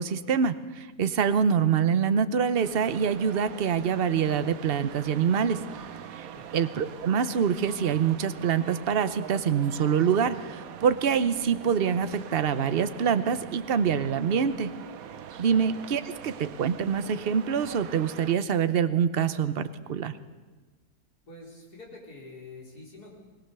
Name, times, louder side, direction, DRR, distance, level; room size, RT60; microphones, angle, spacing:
voice 1, 0.0-5.6 6.2-6.3 6.5-14.7 15.4-20.1, right 7 dB, 45° right, 11 dB, 0.8 m, -25 dB
sound 1, 2.6-18.4, right 8 dB, 65° right, 1.2 m, -43 dB
voice 2, 21.3-23.1, left 2 dB, 75° left, -2 dB, 4.9 m, -46 dB
20.5 x 20.0 x 6.8 m, 1.3 s
omnidirectional pair, 1.7 m